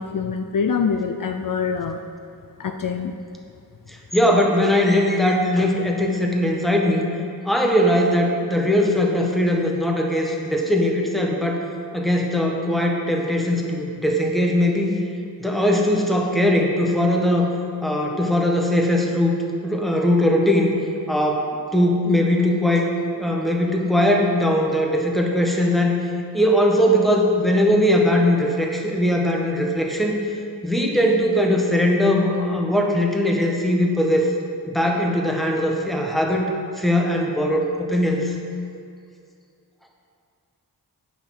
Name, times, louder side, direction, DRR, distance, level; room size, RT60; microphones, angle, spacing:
voice 1, 0.0-2.0 2.6-3.1, left 6 dB, 60° left, 6 dB, 0.5 m, -25 dB
voice 2, 3.9-7.1 7.4-11.6 11.9-14.9 15.4-17.5 17.8-19.4 19.6-20.8 21.1-21.5 21.7-25.9 26.3-30.2 30.6-34.3 34.7-36.5 36.8-38.3, left 1 dB, ahead, 0 dB, 1.3 m, -20 dB
8.9 x 6.0 x 6.0 m, 2.4 s
wide cardioid pair, 65°, 37 cm